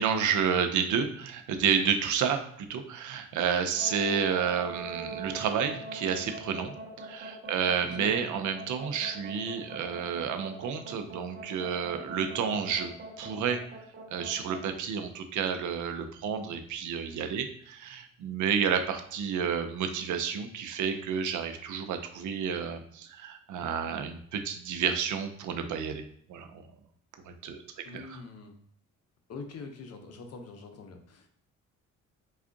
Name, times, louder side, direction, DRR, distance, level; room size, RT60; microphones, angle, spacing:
voice 1, 0.0-13.6 14.1-26.0 26.3-26.6 27.3-27.6 27.9-28.2, right 7 dB, 75° right, 6 dB, 0.6 m, -30 dB
sound 1, 3.7-14.6, right 3 dB, 45° right, 1.0 m, -41 dB
voice 2, 27.8-28.6 29.3-31.4, left 4 dB, 55° left, 5 dB, 0.7 m, -44 dB
3.5 x 2.4 x 3.8 m, 0.63 s
cardioid pair, 90°, 30 cm